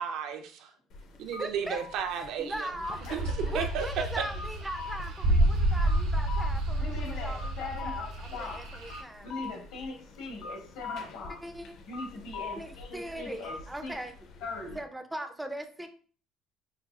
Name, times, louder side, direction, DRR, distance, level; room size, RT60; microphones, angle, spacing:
voice 1, 0.0-0.7 1.2-2.7 3.1-3.3 3.5-3.9 4.2-4.3, right 7 dB, 70° right, 0.6 m, -33 dB
sound 1, 0.9-14.8, left 4 dB, 55° left, 0.5 m, -45 dB
voice 2, 1.4-1.8 2.4-9.3 11.4-11.7 12.6-14.3 14.7-15.9, right 1 dB, 5° right, 0.3 m, -40 dB
sound 2, 2.8-9.0, right 1 dB, 90° right, 1.1 m, -29 dB
voice 3, 3.1-3.5 6.8-8.8 9.2-11.4 11.9-13.6 13.8-14.0 14.4-14.8, left 3 dB, 90° left, 1.5 m, -40 dB
5.5 x 2.3 x 2.3 m
cardioid pair, 135°, 0 cm